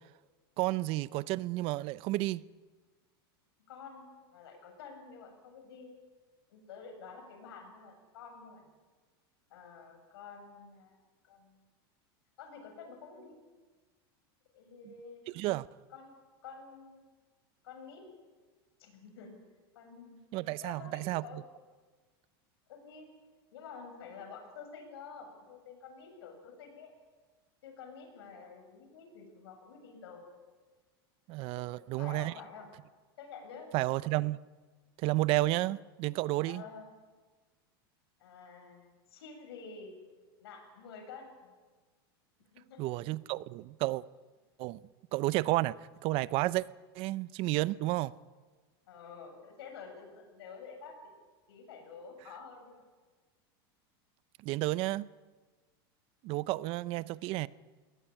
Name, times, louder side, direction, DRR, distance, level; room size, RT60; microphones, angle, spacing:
voice 1, 0.6-2.5 14.9-15.0 15.3-15.7 20.3-21.4 31.3-32.3 33.7-34.4 35.0-36.6 42.8-44.0 44.6-44.8 45.1-45.7 46.0-46.7 46.9-48.1 54.4-55.1 56.2-57.5, right 18 dB, 45° right, 0.6 m, -31 dB
voice 2, 3.7-5.9 6.5-8.7 9.5-11.0 11.2-11.6 12.4-13.4 14.5-15.3 15.9-17.0 17.6-18.1 18.8-19.4 19.7-20.2 20.6-21.5 22.7-23.1 23.5-26.9 27.6-30.2 31.5-32.7 33.2-33.7 36.4-36.9 38.2-40.0 40.4-41.5 42.5-43.0 48.9-51.0 51.5-52.8, left 5 dB, 80° left, 7.7 m, -49 dB
22.0 x 18.0 x 9.9 m
supercardioid pair, 135°, 13 cm